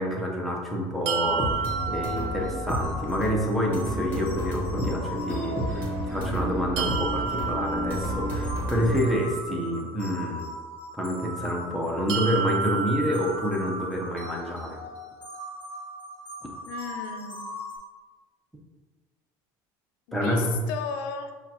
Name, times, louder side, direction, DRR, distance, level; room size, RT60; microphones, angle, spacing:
voice 1, 0.0-1.4 1.9-10.5 10.9-14.8 20.1-20.6, equal, ahead, -2 dB, 0.6 m, -28 dB
sound 1, 1.1-3.0 6.8-8.8 12.1-14.1, right 7 dB, 70° right, 0.4 m, -31 dB
sound 2, 1.2-17.8, equal, 20° left, 1.5 m, -33 dB
voice 2, 16.7-17.4 20.1-21.3, left 6 dB, 90° left, 6 dB, 0.5 m, -34 dB
6.1 x 2.3 x 2.9 m, 1.4 s
cardioid pair, 145°, 11 cm